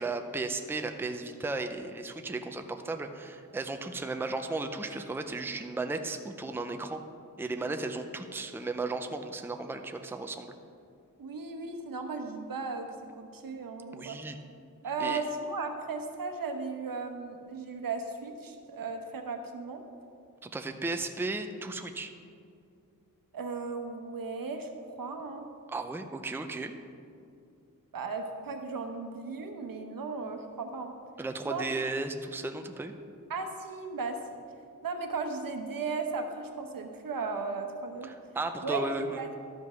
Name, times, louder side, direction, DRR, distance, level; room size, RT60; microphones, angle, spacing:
voice 1, 0.0-7.0 7.4-10.5 13.9-14.4 15.0-15.2 20.4-22.1 25.7-26.7 31.2-32.9 38.0-39.2, right 3 dB, 5° right, 6 dB, 0.5 m, -35 dB
voice 2, 11.2-12.9 13.2-14.2 14.8-19.8 23.3-25.5 27.9-30.9 31.4-31.7 33.3-34.2 34.8-38.1 38.6-39.3, right 4 dB, 80° right, 5 dB, 1.0 m, -36 dB
12.0 x 5.3 x 6.1 m, 2.4 s
wide cardioid pair, 120°, 34 cm